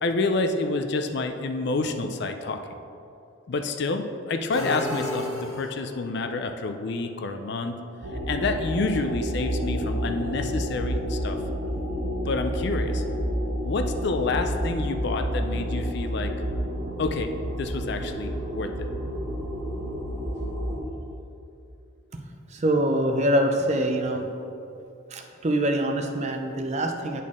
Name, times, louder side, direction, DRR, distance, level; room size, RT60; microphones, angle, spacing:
voice 1, 0.0-2.8 3.5-7.8 8.3-11.4 12.3-13.0 13.6-16.3 17.0-18.9, left 3 dB, 55° left, 7 dB, 0.4 m, -28 dB
sound 1, 4.5-6.1, left 1 dB, 15° left, 1.4 m, -32 dB
sound 2, 8.0-20.8, equal, 85° right, 1.2 m, -29 dB
voice 2, 22.5-24.3 25.1-27.2, right 1 dB, 30° right, 4 dB, 0.5 m, -24 dB
10.0 x 4.2 x 3.6 m, 2.6 s
head